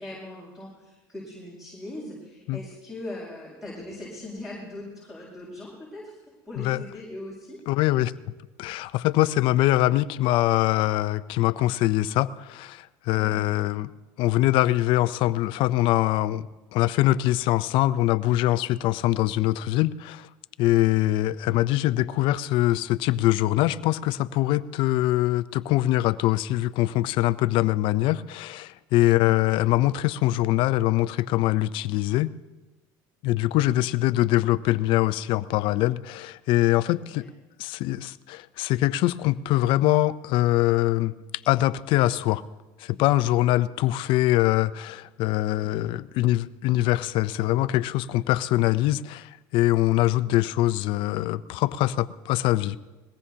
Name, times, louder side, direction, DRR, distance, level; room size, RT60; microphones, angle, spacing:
voice 1, 0.0-6.2 6.4-7.6 37.2-37.3, left 1 dB, 5° right, -6 dB, 6.7 m, -40 dB
voice 2, 7.7-8.1 8.6-13.9 14.2-20.3 20.6-32.3 33.2-37.3 37.6-41.1 41.5-42.4 42.8-52.8, left 16 dB, 65° left, 15 dB, 0.6 m, -23 dB
22.0 x 18.0 x 2.8 m, 1.2 s
supercardioid pair, 115°, 9 cm